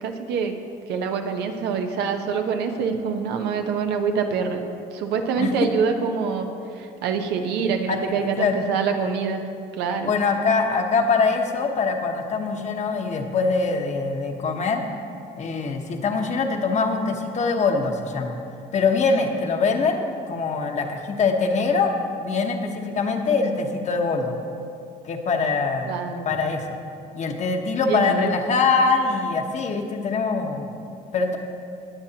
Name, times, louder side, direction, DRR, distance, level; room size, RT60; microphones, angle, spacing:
voice 1, 0.0-0.6 0.9-4.6 4.9-6.5 6.8-9.4 9.7-10.1 25.9-26.3 27.9-28.3, right 6 dB, 85° right, 5 dB, 0.9 m, -25 dB
voice 2, 7.9-8.6 10.0-14.8 15.4-18.4 18.7-24.4 25.0-26.0 26.2-26.7 27.1-30.7 31.1-31.4, left 4 dB, 45° left, 4 dB, 1.1 m, -23 dB
19.0 x 7.6 x 2.9 m, 2.6 s
cardioid pair, 110°, 17 cm